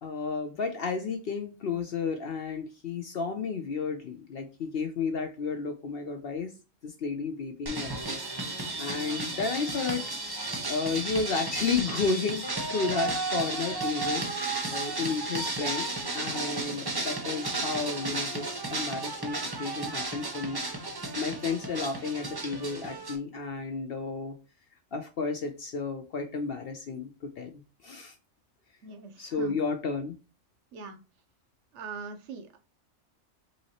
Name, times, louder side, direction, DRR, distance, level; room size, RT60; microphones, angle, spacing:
voice 1, 0.0-6.5 6.8-8.2 8.5-10.1 10.7-12.4 12.7-14.2 14.7-20.6 21.2-24.4 24.9-28.1 29.2-30.1, left 4 dB, 60° left, 6 dB, 0.7 m, -32 dB
sound 1, 7.7-23.2, right 2 dB, 25° right, 0.6 m, -33 dB
voice 2, 28.8-29.6 30.7-31.0 31.7-32.6, right 4 dB, 65° right, 7 dB, 0.9 m, -42 dB
5.5 x 2.9 x 2.8 m, 0.31 s
omnidirectional pair, 1.4 m